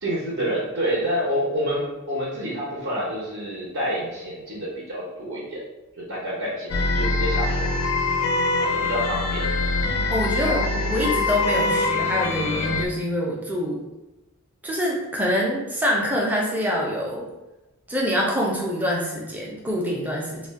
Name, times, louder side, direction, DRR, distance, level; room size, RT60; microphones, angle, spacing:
voice 1, 0.0-5.6 6.0-7.7 8.7-9.5 10.3-11.1 11.4-11.9, equal, 55° right, -5 dB, 0.7 m, -28 dB
sound 1, 6.7-12.9, left 3 dB, 80° left, 0.4 m, -24 dB
voice 2, 10.1-10.6 10.9-13.8 14.6-17.3 17.9-20.5, equal, 5° right, -3 dB, 0.5 m, -25 dB
2.3 x 2.1 x 3.5 m, 1.0 s
head